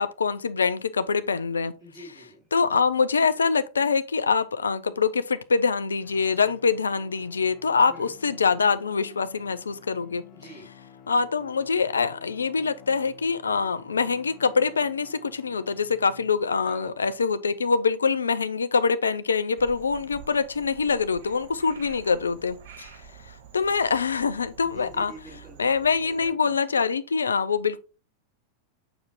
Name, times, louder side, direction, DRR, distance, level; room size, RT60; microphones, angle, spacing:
voice 1, 0.0-1.7 2.5-10.2 11.1-22.9 23.5-25.1 25.6-27.8, left 5 dB, 75° left, 0.6 m, -24 dB
voice 2, 1.8-2.5 7.9-8.1 10.3-10.7 16.6-17.2 23.0-23.3 24.6-26.5, right 1 dB, 20° right, 3.7 m, -46 dB
sound 1, 6.0-16.7, left 8 dB, 40° left, 1.6 m, -50 dB
Frog, 19.6-26.3, right 6 dB, 55° right, 1.5 m, -48 dB
7.2 x 6.2 x 2.9 m
figure-of-eight pair, 90°, 0 cm